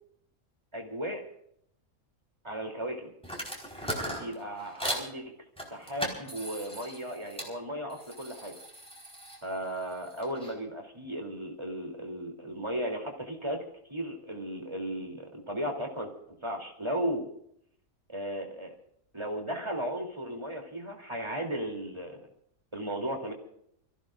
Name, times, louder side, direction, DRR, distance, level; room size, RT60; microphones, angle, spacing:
voice 1, 0.7-1.2 2.4-3.1 4.0-5.3 5.7-8.6 9.4-17.3 18.1-18.8 19.1-22.2 22.7-23.3, equal, 20° right, 2 dB, 3.2 m, -35 dB
sound 1, 3.2-5.1 5.6-7.5 7.9-10.5, equal, 5° left, 4.5 m, -38 dB
29.0 x 15.5 x 2.5 m, 0.70 s
omnidirectional pair, 1.5 m